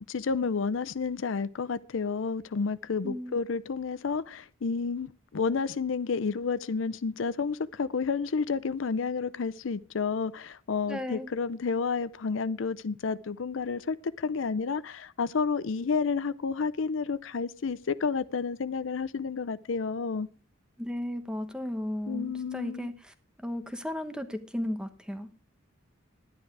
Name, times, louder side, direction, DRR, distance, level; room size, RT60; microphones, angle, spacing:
voice 1, 0.1-20.3 22.1-22.9, left 5 dB, 70° left, 0.5 m, -30 dB
voice 2, 3.0-3.4 10.9-11.3 20.8-23.1 23.4-25.3, left 1 dB, 5° right, 1.0 m, -35 dB
11.5 x 10.5 x 4.7 m
head